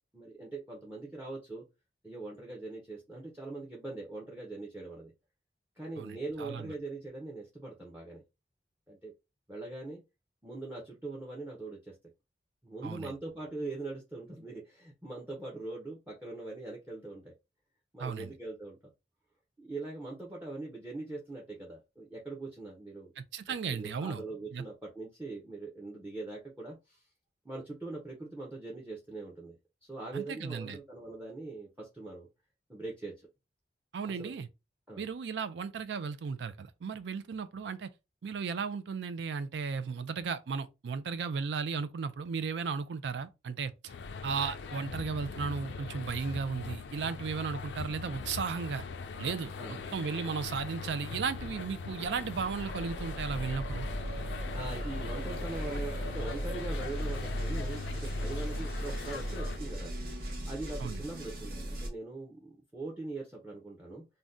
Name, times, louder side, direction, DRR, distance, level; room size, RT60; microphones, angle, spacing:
voice 1, 0.1-1.6 2.0-5.1 5.8-8.2 8.9-9.1 9.5-10.0 10.4-11.9 12.6-17.3 17.9-18.8 19.6-23.1 23.7-27.0 27.4-29.6 29.8-32.3 32.7-33.1 34.1-34.3 34.9-35.0 49.6-49.9 54.5-59.9 60.4-64.0, right 2 dB, 10° right, 0.6 m, -42 dB
voice 2, 6.0-6.7 12.8-13.1 18.0-18.3 23.2-24.2 24.5-24.6 30.1-30.8 33.9-34.5 35.0-37.9 38.2-43.9 44.2-48.8 49.2-49.5 49.9-53.9 60.8-61.0, right 5 dB, 75° right, 0.4 m, -35 dB
sound 1, 43.9-59.6, left 5 dB, 80° left, 0.4 m, -41 dB
sound 2, 49.5-61.9, equal, 55° right, 0.8 m, -38 dB
2.6 x 2.2 x 3.5 m
head